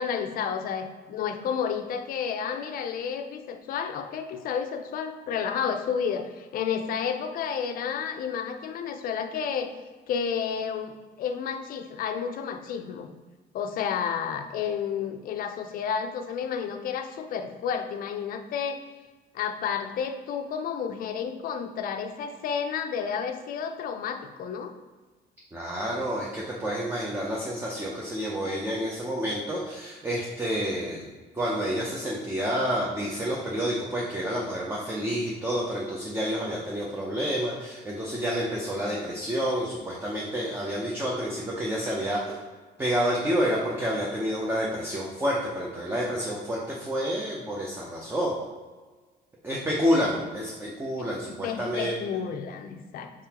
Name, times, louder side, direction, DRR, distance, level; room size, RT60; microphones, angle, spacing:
voice 1, 0.0-9.7 10.1-13.1 13.5-18.8 19.3-24.7 51.0-53.1, left 7 dB, 50° left, 7 dB, 0.4 m, -31 dB
voice 2, 25.5-31.1 31.3-42.2 42.8-48.4 49.4-52.0, equal, 10° right, -3 dB, 0.5 m, -29 dB
4.7 x 3.7 x 2.8 m, 1.4 s
cardioid pair, 155°, 19 cm